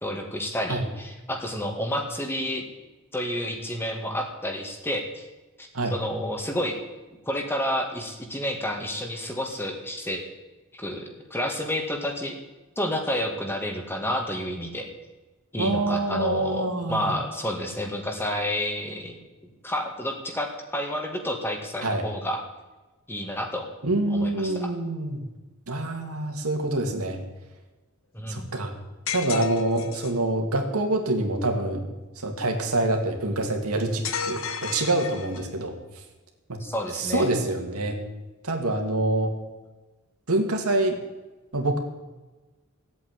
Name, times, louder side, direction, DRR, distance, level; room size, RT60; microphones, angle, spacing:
voice 1, 0.0-2.7 3.1-5.2 5.6-6.8 7.3-10.2 10.7-12.4 12.8-14.9 15.5-22.4 23.1-23.7 24.1-24.7 28.1-28.5 36.6-37.3, equal, 10° left, 3 dB, 1.9 m, -30 dB
voice 2, 15.6-17.2 21.8-22.0 23.8-25.2 25.7-27.2 28.3-28.7 29.1-31.9 32.2-35.7 36.5-36.6 36.9-38.0 38.4-39.3 40.3-41.0 41.5-41.8, right 2 dB, 85° right, 3 dB, 2.6 m, -26 dB
sound 1, 29.1-30.2 34.0-35.6, left 5 dB, 60° left, 1.2 m, -32 dB
16.5 x 8.3 x 9.6 m, 1.2 s
head